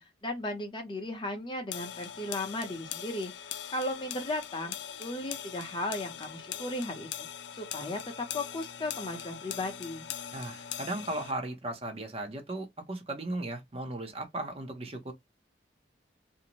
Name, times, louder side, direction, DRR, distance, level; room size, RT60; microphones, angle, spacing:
voice 1, 0.0-7.3 7.5-10.1, left 1 dB, 25° left, 0.6 m, -36 dB
sound 1, 1.7-11.3, left 10 dB, 70° left, 0.3 m, -41 dB
voice 2, 10.3-15.1, right 2 dB, 30° right, 0.6 m, -36 dB
2.6 x 2.0 x 2.8 m
head